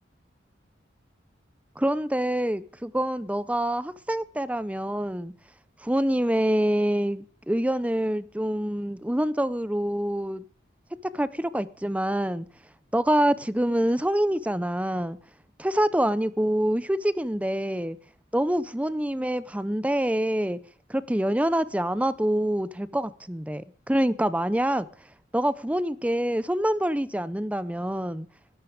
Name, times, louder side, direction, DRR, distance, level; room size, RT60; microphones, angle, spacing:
voice 1, 1.8-5.3 5.8-10.4 11.1-12.5 12.9-15.2 15.6-18.0 18.3-20.6 20.9-24.9 25.3-28.3, right 1 dB, 5° right, 0.6 m, -26 dB
19.5 x 12.0 x 5.1 m
head